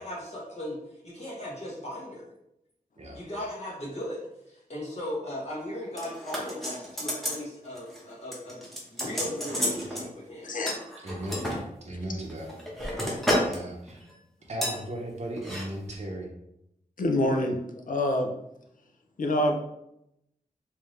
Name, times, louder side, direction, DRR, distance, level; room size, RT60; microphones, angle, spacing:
voice 1, 0.0-2.3 3.1-4.2 4.5-8.6 8.9-10.5, left 1 dB, 45° left, -7 dB, 1.3 m, -37 dB
sound 1, 6.0-7.4 7.8-8.0 8.3-10.1 10.7-11.6 12.2-13.6 13.9-14.1 14.6-14.8 15.4-15.6 15.9-16.0, equal, ahead, 1.0 m, -31 dB
voice 2, 11.0-11.5 11.8-12.5 13.5-14.1 14.5-16.3, right 1 dB, 50° right, -2 dB, 0.7 m, -36 dB
voice 3, 17.0-17.6 17.9-18.3 19.2-19.6, left 1 dB, 65° left, 3 dB, 0.5 m, -26 dB
3.5 x 2.7 x 3.2 m, 0.82 s
wide cardioid pair, 85°, 15 cm